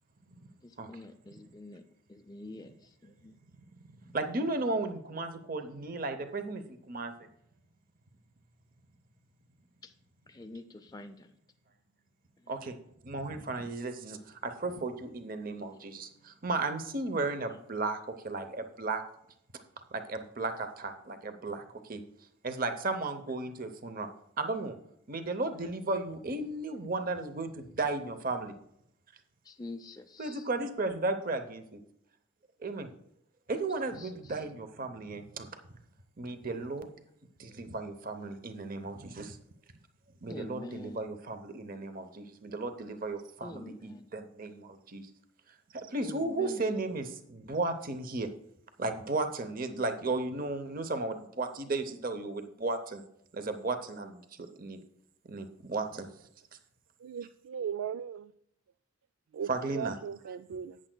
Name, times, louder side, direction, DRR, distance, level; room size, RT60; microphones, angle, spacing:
voice 1, 0.6-3.4 9.8-9.9 10.3-11.4 12.4-12.5 15.6-15.9 17.4-17.6 23.3-23.4 25.5-25.6 29.4-30.5 34.0-34.4 36.6-36.7 40.3-41.0 43.4-44.1 46.0-46.6 46.9-47.0, left 2 dB, 20° left, 0.4 m, -46 dB
voice 2, 4.1-7.1 12.5-12.8 13.0-18.0 18.2-19.0 19.9-22.0 22.4-24.1 24.4-24.8 25.1-28.5 30.2-31.8 32.6-32.9 33.5-35.5 36.2-36.9 37.4-39.4 40.2-45.1 45.7-48.3 48.8-53.0 53.3-54.8 55.3-56.1 59.5-59.9, right 3 dB, 40° right, 0.7 m, -35 dB
voice 3, 57.0-58.3 59.3-60.8, right 8 dB, 80° right, 0.3 m, -38 dB
13.5 x 9.0 x 2.2 m
head